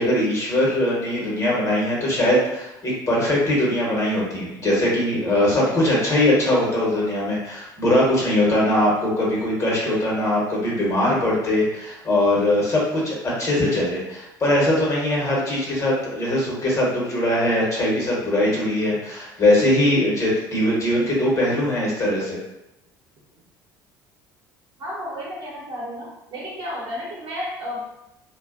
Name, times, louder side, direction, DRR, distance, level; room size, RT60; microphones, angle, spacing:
voice 1, 0.0-22.4, left 1 dB, 30° left, -5 dB, 1.0 m, -21 dB
voice 2, 24.8-27.8, equal, 45° right, -5 dB, 1.0 m, -32 dB
2.3 x 2.2 x 2.4 m, 0.87 s
figure-of-eight pair, 60°, 11 cm